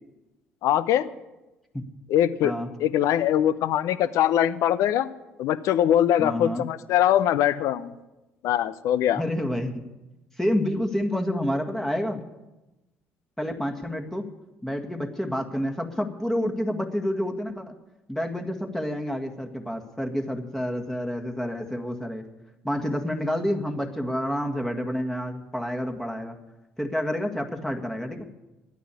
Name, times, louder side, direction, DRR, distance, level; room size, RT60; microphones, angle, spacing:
voice 1, 0.6-1.1 2.1-2.5 2.8-5.1 5.4-7.9 8.4-9.2, left 11 dB, 65° left, 16 dB, 0.6 m, -22 dB
voice 2, 6.2-6.7 9.2-9.8 10.4-12.2 13.4-14.2 14.6-17.8 18.1-22.3 22.6-26.4 26.8-28.2, equal, 5° left, 3 dB, 1.7 m, -28 dB
11.5 x 9.2 x 8.4 m, 1.0 s
hypercardioid pair, 55°, 6 cm